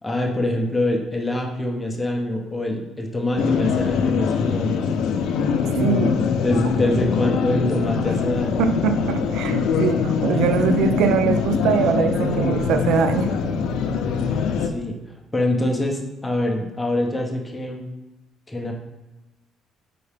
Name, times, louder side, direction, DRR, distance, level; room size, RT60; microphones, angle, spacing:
voice 1, 0.0-4.8 5.9-8.6 14.6-15.0 15.3-17.8 18.5-18.7, left 1 dB, 10° left, 0 dB, 0.6 m, -24 dB
sound 1, 3.4-14.7, left 6 dB, 80° left, 0.4 m, -23 dB
voice 2, 5.8-6.2 8.6-13.4, right 6 dB, 85° right, 8 dB, 0.3 m, -22 dB
4.6 x 2.7 x 3.3 m, 1.1 s
cardioid pair, 150°, 0 cm